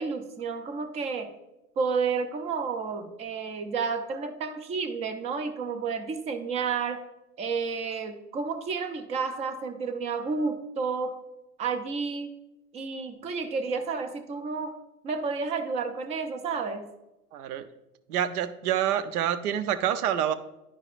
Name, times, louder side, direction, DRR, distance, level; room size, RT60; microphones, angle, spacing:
voice 1, 0.0-1.3 1.8-7.0 7.4-11.2 11.6-12.3 12.7-16.9, right 5 dB, 15° right, 9 dB, 0.4 m, -31 dB
voice 2, 17.3-17.7 18.1-20.3, right 10 dB, 70° right, 12 dB, 0.7 m, -27 dB
11.0 x 4.9 x 2.4 m, 0.93 s
hypercardioid pair, 115°, 47 cm